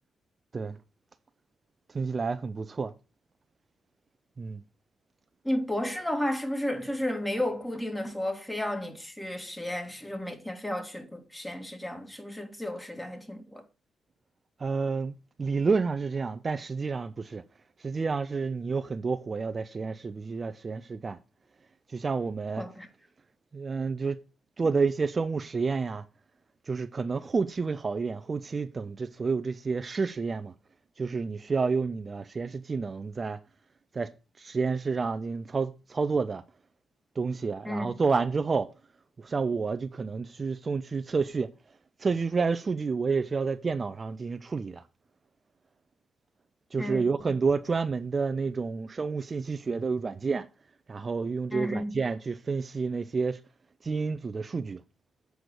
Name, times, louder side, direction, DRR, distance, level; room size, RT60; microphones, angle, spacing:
voice 1, 1.9-2.9 4.4-4.6 14.6-17.4 17.8-21.2 21.9-22.6 23.5-24.2 24.6-26.1 26.7-30.5 31.0-33.4 33.9-34.1 34.4-36.4 37.2-38.7 39.2-41.5 42.0-44.8 46.7-50.5 50.9-53.4 53.8-54.8, right 4 dB, 40° right, 0.6 m, -29 dB
voice 2, 5.4-13.7 22.6-22.9 37.6-37.9 46.8-47.4 51.5-52.0, left 1 dB, 10° left, 2.1 m, -33 dB
7.8 x 4.7 x 6.7 m
supercardioid pair, 55°, 0 cm